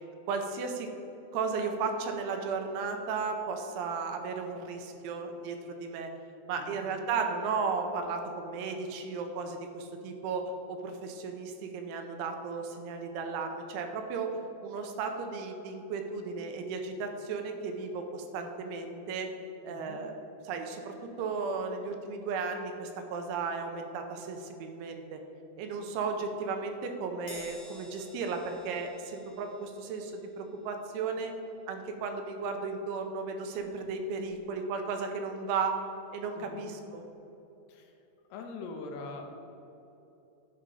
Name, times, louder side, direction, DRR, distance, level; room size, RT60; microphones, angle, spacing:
voice 1, 0.3-0.9 1.3-6.1 6.5-10.4 10.7-14.3 14.6-19.3 19.6-20.2 20.4-25.2 25.6-31.3 31.7-35.7 36.1-37.0, right 4 dB, 85° right, 5 dB, 3.1 m, -35 dB
voice 2, 19.6-20.0 36.4-36.7 37.7-37.9 38.3-39.3, left 3 dB, 80° left, 3 dB, 2.5 m, -43 dB
Crash cymbal, 27.3-33.9 34.2-34.5 35.5-35.6, left 2 dB, 50° left, 3.3 m, -53 dB
11.0 x 5.1 x 5.5 m, 2.9 s
omnidirectional pair, 5.5 m